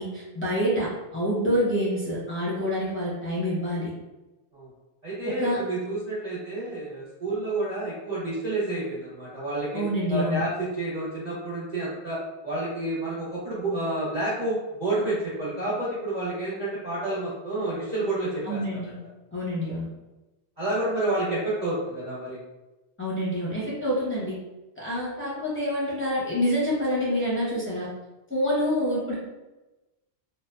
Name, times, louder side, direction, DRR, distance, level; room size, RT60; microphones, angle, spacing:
voice 1, 0.0-3.9 5.4-5.6 9.7-10.4 18.4-19.0 19.3-19.9 23.0-24.3 24.8-27.9 28.3-29.1, equal, 15° left, -9 dB, 0.6 m, -27 dB
voice 2, 5.0-9.8 10.1-18.8 20.6-22.4, right 2 dB, 45° right, -9 dB, 0.8 m, -29 dB
2.5 x 2.2 x 2.2 m, 1.1 s
omnidirectional pair, 1.1 m